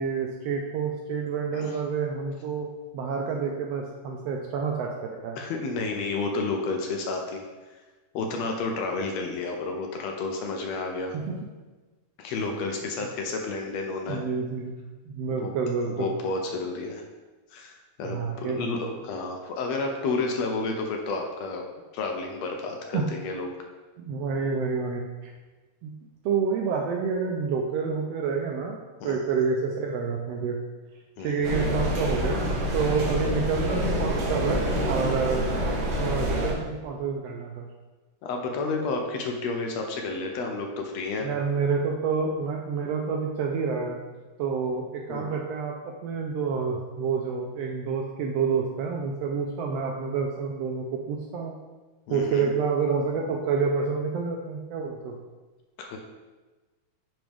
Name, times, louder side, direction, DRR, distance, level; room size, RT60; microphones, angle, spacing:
voice 1, 0.0-2.7 2.9-4.9 5.2-5.4 11.1-11.3 12.7-12.8 14.1-14.7 15.0-16.1 18.0-18.7 22.9-23.1 24.0-25.3 25.8-25.9 26.2-28.8 29.0-30.6 31.2-35.5 36.0-37.7 41.2-44.0 44.4-51.5 52.1-55.1, right 5 dB, 80° right, 1 dB, 1.5 m, -28 dB
voice 2, 5.4-7.5 8.1-11.2 12.2-14.2 15.4-15.5 15.9-17.0 17.5-21.6 21.9-23.5 29.0-29.2 31.2-31.4 38.2-41.3 45.1-45.4 52.1-52.5 55.8-56.0, left 3 dB, 75° left, 2 dB, 1.7 m, -31 dB
sound 1, 31.4-36.5, equal, 60° right, 2.4 m, -27 dB
9.4 x 4.1 x 3.5 m, 1.2 s
omnidirectional pair, 3.3 m